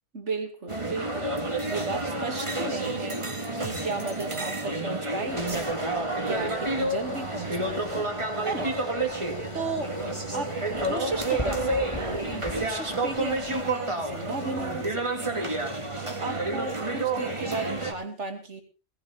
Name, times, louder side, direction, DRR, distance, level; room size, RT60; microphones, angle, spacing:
voice 1, 0.1-1.3 1.6-5.7 6.2-8.1 8.4-8.7 9.5-9.9 10.3-10.5 10.8-15.5 16.2-18.6, right 3 dB, 70° right, 5 dB, 2.8 m, -35 dB
sound 1, 0.7-17.9, right 2 dB, 25° right, 2.1 m, -30 dB
sound 2, 5.3-13.6, left 2 dB, 25° left, 1.7 m, -40 dB
18.5 x 15.5 x 3.5 m, 0.33 s
omnidirectional pair, 1.2 m